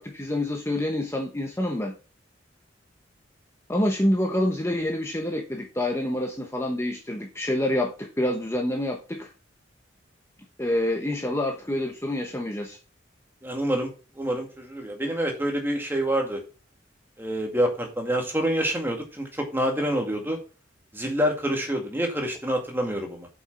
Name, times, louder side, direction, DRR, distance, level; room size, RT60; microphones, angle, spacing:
voice 1, 0.0-1.9 3.7-9.3 10.6-12.8, left 1 dB, 15° left, 2 dB, 1.0 m, -27 dB
voice 2, 13.4-13.9 14.2-16.4 17.2-20.4 20.9-23.3, equal, 10° right, 3 dB, 2.1 m, -27 dB
8.0 x 6.1 x 5.9 m, 0.34 s
head